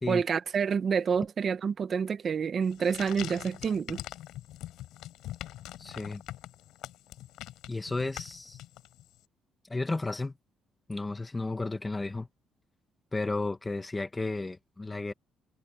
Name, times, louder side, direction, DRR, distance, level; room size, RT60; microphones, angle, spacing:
voice 1, 0.1-4.0, right 6 dB, 35° right, 1.0 m, -28 dB
sound 1, 2.6-9.2, left 14 dB, 85° left, 6.8 m, -43 dB
voice 2, 5.8-6.2 7.7-8.6 9.7-10.3 10.9-12.3 13.1-15.1, left 3 dB, 15° left, 1.3 m, -33 dB
cardioid pair, 150°, 0 cm